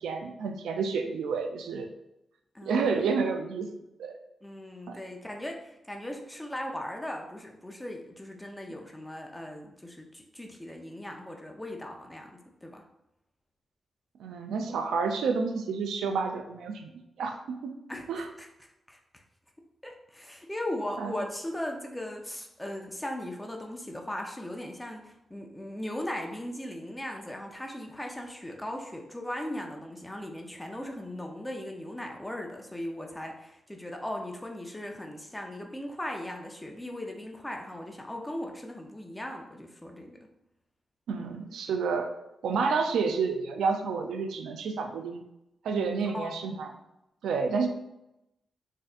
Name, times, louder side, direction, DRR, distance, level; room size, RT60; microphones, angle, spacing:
voice 1, 0.0-1.9 2.6-3.7 4.0-4.2 4.9-5.0 14.2-16.9 17.2-17.7 18.1-18.3 21.0-21.2 41.1-42.1 42.4-45.2 45.6-46.7 47.2-47.7, right 5 dB, 90° right, 6 dB, 0.4 m, -29 dB
voice 2, 2.5-3.3 4.4-12.8 17.9-19.2 19.8-40.2 46.1-46.3, left 1 dB, 10° left, 2 dB, 0.6 m, -38 dB
4.2 x 2.7 x 2.4 m, 0.88 s
cardioid pair, 55°, 0 cm